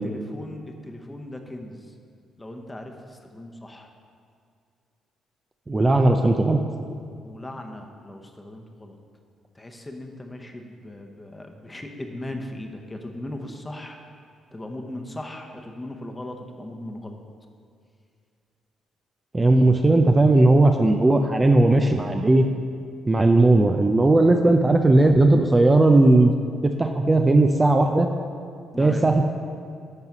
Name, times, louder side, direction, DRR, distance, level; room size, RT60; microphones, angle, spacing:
voice 1, 0.0-1.9 2.4-3.9 7.2-9.0 9.5-14.0 14.5-17.2 28.7-29.1, left 1 dB, 15° left, 3 dB, 0.9 m, -38 dB
voice 2, 5.7-6.6 19.3-22.5 23.1-26.3 26.6-28.1 28.8-29.3, right 2 dB, 20° right, 4 dB, 0.4 m, -17 dB
10.5 x 4.0 x 6.0 m, 2.3 s
cardioid pair, 90°, 0 cm